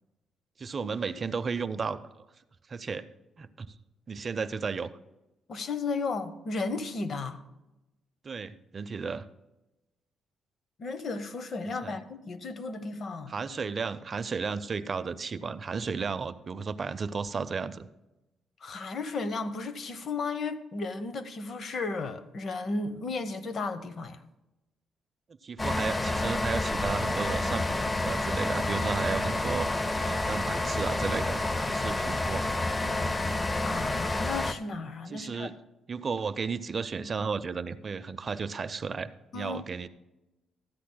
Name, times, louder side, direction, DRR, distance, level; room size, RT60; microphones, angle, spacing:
voice 1, 0.6-2.2 2.7-3.1 3.4-3.7 4.1-4.9 8.2-9.3 11.6-12.0 13.3-17.9 25.4-29.7 30.0-32.5 35.1-35.6 35.9-39.9, right 5 dB, 40° right, 0.5 m, -33 dB
voice 2, 5.5-7.4 10.8-13.3 18.6-24.2 32.7-33.4 33.6-35.5 39.3-39.6, left 3 dB, 50° left, 0.8 m, -34 dB
sound 1, 25.6-34.5, left 2 dB, 20° left, 0.5 m, -29 dB
13.5 x 10.0 x 2.2 m
cardioid pair, 90°, 0 cm